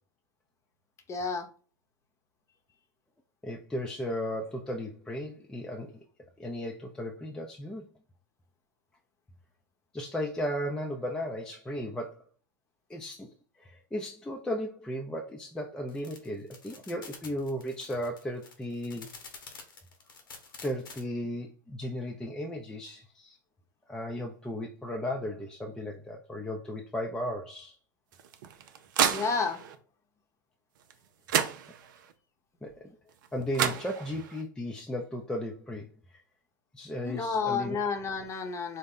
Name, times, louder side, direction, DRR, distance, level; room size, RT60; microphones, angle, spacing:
voice 1, 1.1-1.5 29.1-29.6 37.0-38.8, left 5 dB, 25° left, 5 dB, 0.8 m, -30 dB
voice 2, 3.4-6.0 6.4-7.8 9.9-12.2 12.9-19.1 20.6-23.4 23.9-27.8 32.6-33.0 33.3-36.2 36.7-37.8, equal, 5° left, 1 dB, 0.5 m, -35 dB
sound 1, 15.9-21.0, left 4 dB, 85° left, 1.0 m, -48 dB
sound 2, 28.1-29.8 30.9-31.0 31.3-32.1 33.2-33.3 33.5-34.4, right 8 dB, 70° right, 0.5 m, -30 dB
3.9 x 2.1 x 3.6 m, 0.39 s
hypercardioid pair, 100°, 11 cm